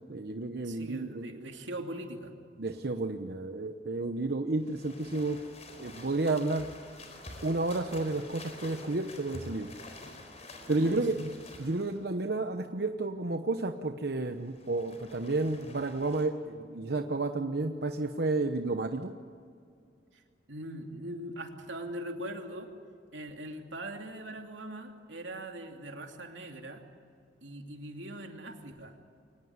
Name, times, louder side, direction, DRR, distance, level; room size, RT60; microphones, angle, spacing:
voice 1, 0.1-1.3 2.6-5.4 5.8-6.7 7.4-9.7 10.7-11.3 11.6-19.1, right 2 dB, 60° right, 6 dB, 0.9 m, -31 dB
voice 2, 0.6-2.3 10.6-11.1 20.1-20.2 20.5-22.7 23.1-26.8 27.4-28.9, right 1 dB, 90° right, 3 dB, 2.9 m, -41 dB
sound 1, 4.5-12.0 14.3-16.2, left 2 dB, 40° left, 4.4 m, -48 dB
24.0 x 19.0 x 9.6 m, 2.2 s
head